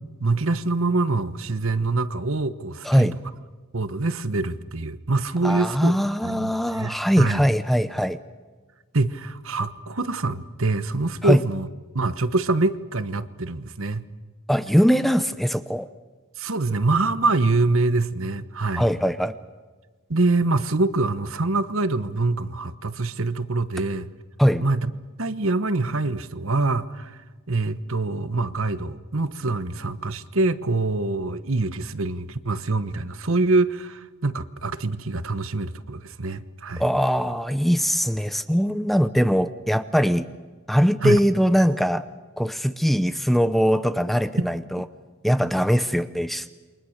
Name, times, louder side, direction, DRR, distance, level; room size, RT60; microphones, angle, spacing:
voice 1, 0.2-3.1 3.7-6.0 6.2-7.4 8.9-11.7 11.9-14.1 16.4-18.9 20.1-24.1 24.6-24.9 25.2-27.2 27.5-36.8 41.0-41.2 44.4-44.5, right 3 dB, 60° right, 13 dB, 1.1 m, -25 dB
voice 2, 2.8-3.1 5.4-8.2 11.2-11.4 14.5-15.9 18.8-19.3 24.4-24.6 36.8-40.3 40.7-42.0 42.4-44.8 45.2-46.4, equal, ahead, 12 dB, 0.7 m, -21 dB
28.5 x 24.0 x 6.6 m, 1.4 s
head